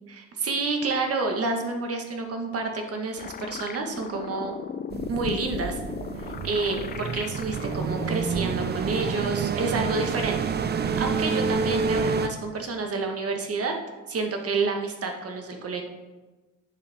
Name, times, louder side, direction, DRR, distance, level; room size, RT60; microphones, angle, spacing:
voice 1, 0.1-4.5 5.1-5.8 6.2-10.4 11.0-13.7 14.1-15.8, right 3 dB, 50° right, 3 dB, 1.4 m, -29 dB
sound 1, 3.2-8.8, left 7 dB, 30° left, 0.4 m, -37 dB
sound 2, 4.9-12.3, right 5 dB, 35° right, 0.5 m, -28 dB
9.0 x 6.7 x 3.5 m, 1.2 s
cardioid pair, 90°, 30 cm